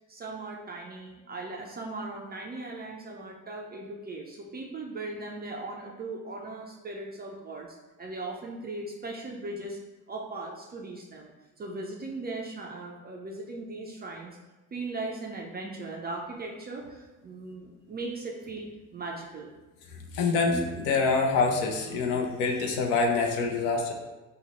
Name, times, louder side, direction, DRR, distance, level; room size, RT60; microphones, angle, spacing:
voice 1, 0.1-9.8 10.1-11.3 11.6-14.4 14.7-19.5, right 2 dB, 20° right, -1 dB, 0.4 m, -38 dB
voice 2, 19.9-23.9, left 4 dB, 70° left, 2 dB, 0.7 m, -26 dB
2.9 x 2.1 x 4.0 m, 1.1 s
hypercardioid pair, 50°, 48 cm